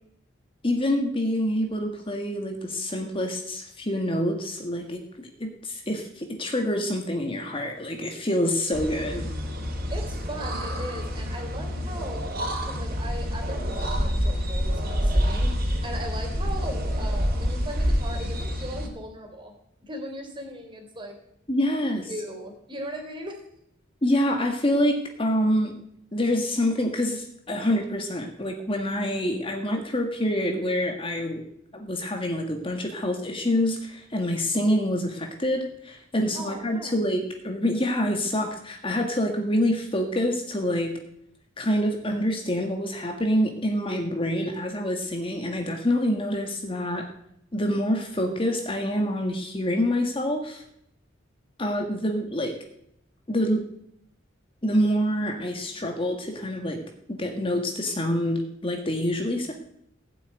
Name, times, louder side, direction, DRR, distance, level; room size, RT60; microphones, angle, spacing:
voice 1, 0.6-9.3 21.5-22.1 24.0-25.7 26.1-31.4 31.7-41.0 41.6-47.1 47.5-50.6 51.6-52.6 53.3-53.7 54.6-56.8 57.1-59.5, left 1 dB, 25° left, 3 dB, 1.7 m, -26 dB
sound 1, 8.7-18.9, equal, 50° right, 3.6 m, -27 dB
voice 2, 9.9-12.2 12.7-15.5 15.8-19.5 19.8-21.2 22.1-23.4 36.3-37.0, right 1 dB, 25° right, 3 dB, 3.8 m, -38 dB
17.5 x 7.8 x 9.4 m, 0.75 s
head